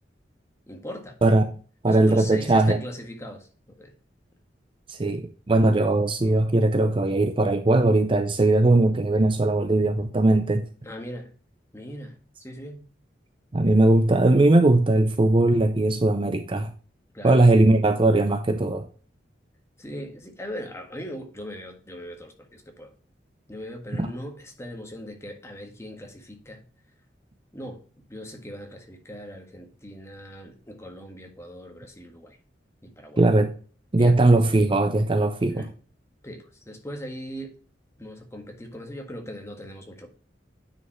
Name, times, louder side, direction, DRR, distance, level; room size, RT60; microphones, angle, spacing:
voice 1, 0.7-1.2 1.9-3.9 10.8-11.3 11.7-12.8 17.1-17.4 19.8-22.9 23.5-26.6 27.5-32.4 32.8-33.2 34.0-34.2 35.6-35.7 36.2-37.6 38.0-40.1, equal, 15° left, 1.6 m, -39 dB
voice 2, 1.8-2.8 4.9-10.6 13.5-16.7 17.2-18.9 24.0-24.1 33.2-33.5 33.9-35.6, right 2 dB, 30° right, 0.6 m, -19 dB
9.5 x 5.1 x 3.1 m
head